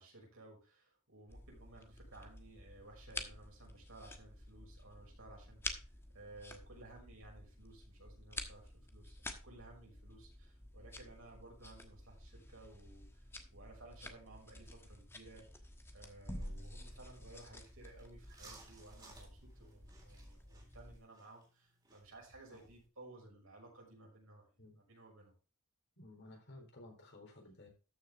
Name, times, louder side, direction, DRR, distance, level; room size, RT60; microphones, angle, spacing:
voice 1, 0.0-13.2 13.5-15.5 15.9-24.5 24.8-25.3, right 2 dB, 65° right, -1 dB, 6.0 m, -57 dB
sound 1, 1.3-21.0, left 1 dB, 10° left, 1.2 m, -50 dB
sound 2, 16.4-22.9, right 3 dB, 20° right, 3.8 m, -63 dB
voice 2, 26.0-27.7, left 2 dB, 50° left, 2 dB, 3.9 m, -55 dB
13.5 x 6.6 x 3.6 m, 0.33 s
head